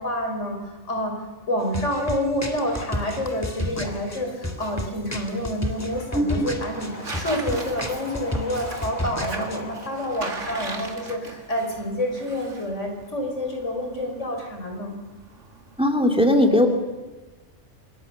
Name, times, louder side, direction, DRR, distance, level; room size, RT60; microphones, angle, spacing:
voice 1, 0.0-15.0, left 1 dB, 85° left, 3 dB, 4.9 m, -28 dB
sound 1, 1.6-9.6, equal, 15° left, 2.2 m, -32 dB
Tearing, 3.6-15.8, right 3 dB, 90° right, 2.6 m, -40 dB
sound 2, 5.7-11.8, left 1 dB, 35° left, 3.7 m, -42 dB
voice 2, 6.1-6.5 15.8-16.7, left 1 dB, 5° right, 4 dB, 2.7 m, -19 dB
27.5 x 24.5 x 6.6 m, 1.2 s
omnidirectional pair, 1.2 m